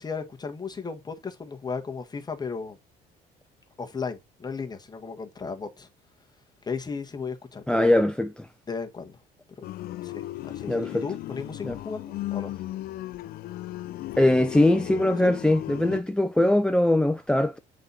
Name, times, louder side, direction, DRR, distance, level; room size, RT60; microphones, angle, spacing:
voice 1, 0.0-2.8 3.8-5.9 6.6-8.0 8.7-9.2 9.6-9.7 10.0-12.5 15.2-15.3, left 5 dB, 25° left, 1.4 m, -35 dB
voice 2, 7.7-8.5 10.7-11.0 11.6-11.8 14.2-17.6, left 1 dB, 5° left, 0.4 m, -21 dB
sound 1, 9.6-16.0, left 15 dB, 65° left, 0.4 m, -36 dB
7.7 x 4.1 x 4.0 m
cardioid pair, 110°, 17 cm